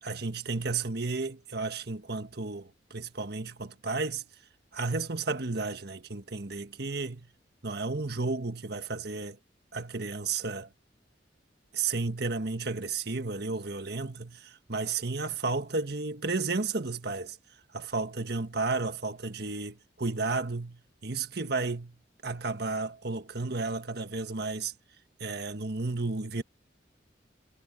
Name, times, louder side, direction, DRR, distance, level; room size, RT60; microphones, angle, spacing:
voice 1, 0.0-4.2 4.7-7.3 7.6-9.4 9.7-10.7 11.7-17.4 17.7-22.0 22.2-24.7 25.2-26.4, right 3 dB, 60° right, 1.6 m, -33 dB
head